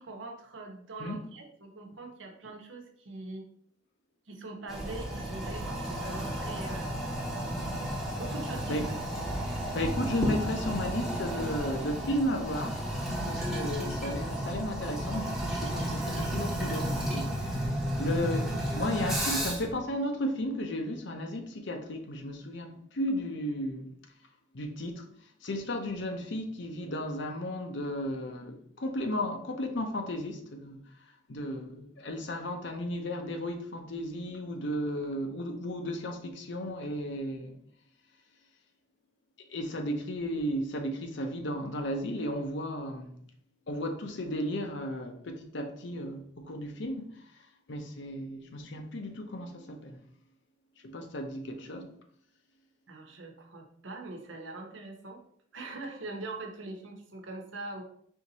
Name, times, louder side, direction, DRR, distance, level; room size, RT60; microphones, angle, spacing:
voice 1, 0.0-3.4 4.3-6.9 8.1-9.0 52.9-55.2 55.5-57.8, right 2 dB, 70° right, 1.0 m, -42 dB
Toilet flush, 4.7-19.7, equal, ahead, 0.9 m, -33 dB
voice 2, 9.7-23.9 24.5-25.0 25.4-37.6 39.5-43.2 43.7-47.3 47.7-50.0 50.8-51.9, left 1 dB, 60° left, 0.7 m, -34 dB
4.5 x 2.8 x 4.0 m
head